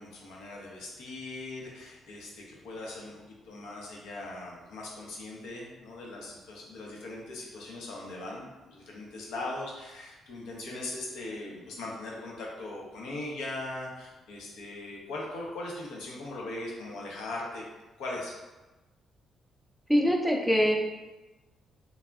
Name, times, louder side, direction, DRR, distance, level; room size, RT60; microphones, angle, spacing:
voice 1, 0.0-17.6 18.0-18.4, left 2 dB, 85° left, -2 dB, 0.6 m, -40 dB
voice 2, 19.9-20.8, equal, ahead, 0 dB, 0.4 m, -23 dB
3.3 x 2.0 x 2.3 m, 1.1 s
cardioid pair, 90°, 0 cm